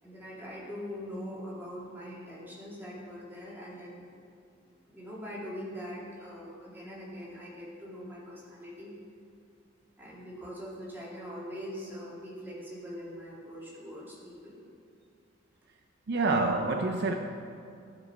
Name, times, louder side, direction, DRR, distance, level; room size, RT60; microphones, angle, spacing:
voice 1, 0.0-4.0 4.5-8.9 10.0-14.6, equal, 10° right, -6 dB, 2.1 m, -42 dB
voice 2, 16.1-17.1, right 3 dB, 60° right, 4 dB, 0.5 m, -27 dB
14.0 x 4.8 x 4.5 m, 2.4 s
head